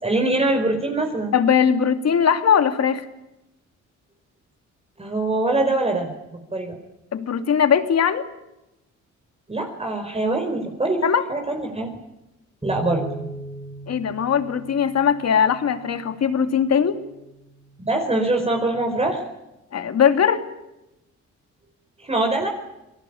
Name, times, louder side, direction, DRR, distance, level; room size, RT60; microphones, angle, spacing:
voice 1, 0.0-1.3 5.0-6.8 9.5-11.0 11.3-12.0 12.6-13.1 17.8-19.2 22.0-22.5, right 2 dB, 20° right, 3 dB, 4.7 m, -23 dB
voice 2, 1.3-3.0 7.1-8.2 11.0-11.2 13.9-17.0 19.7-20.4, left 7 dB, 55° left, 8 dB, 2.7 m, -20 dB
sound 1, 12.6-18.9, right 1 dB, 5° right, 5.3 m, -40 dB
27.5 x 18.5 x 8.8 m, 0.94 s
cardioid pair, 90°, 30 cm